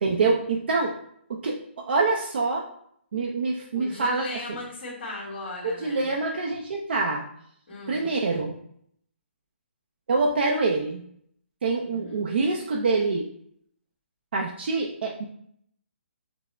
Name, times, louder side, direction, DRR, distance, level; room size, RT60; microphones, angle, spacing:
voice 1, 0.0-0.9 1.3-2.7 3.1-4.2 5.6-7.2 7.9-8.5 10.1-11.0 11.6-13.3 14.3-15.2, right 3 dB, 60° right, 0 dB, 0.5 m, -25 dB
voice 2, 3.7-6.1 7.7-8.1 11.9-12.2, left 2 dB, 50° left, -8 dB, 1.5 m, -37 dB
5.9 x 2.0 x 3.2 m, 0.67 s
hypercardioid pair, 165°, 7 cm